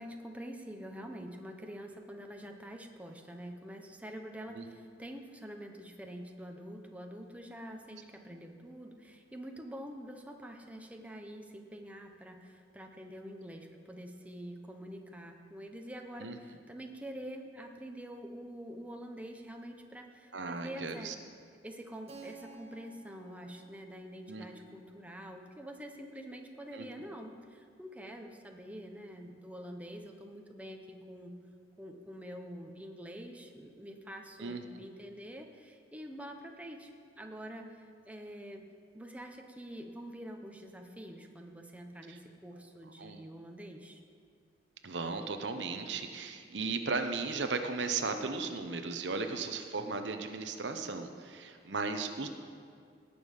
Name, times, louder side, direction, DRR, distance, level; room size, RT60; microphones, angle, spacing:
voice 1, 0.0-21.1 21.6-31.3 31.8-36.9 37.2-38.6 38.9-44.0, equal, 10° right, 3 dB, 0.9 m, -46 dB
voice 2, 20.3-21.1 24.3-24.5 26.7-27.1 34.4-34.8 42.1-42.2 43.0-43.2 44.8-52.3, right 4 dB, 85° right, 6 dB, 0.9 m, -36 dB
Keyboard (musical), 22.1-26.6, right 4 dB, 35° right, 1.2 m, -56 dB
18.0 x 7.0 x 5.5 m, 2.3 s
head